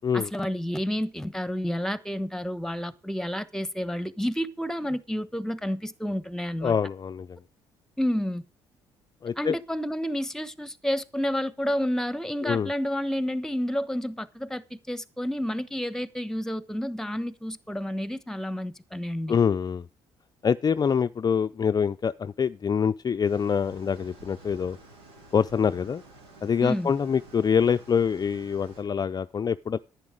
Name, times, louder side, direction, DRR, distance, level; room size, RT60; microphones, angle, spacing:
voice 1, 0.1-6.7 8.0-8.4 9.4-19.4 26.6-26.9, equal, 5° left, 1.1 m, -30 dB
voice 2, 6.6-7.4 9.2-9.6 12.4-12.7 19.3-19.8 20.4-24.8 25.3-26.0 26.4-29.8, left 7 dB, 35° left, 0.5 m, -25 dB
sound 1, 23.2-28.8, right 2 dB, 90° right, 4.3 m, -50 dB
10.5 x 9.6 x 5.0 m
hypercardioid pair, 55°, 12 cm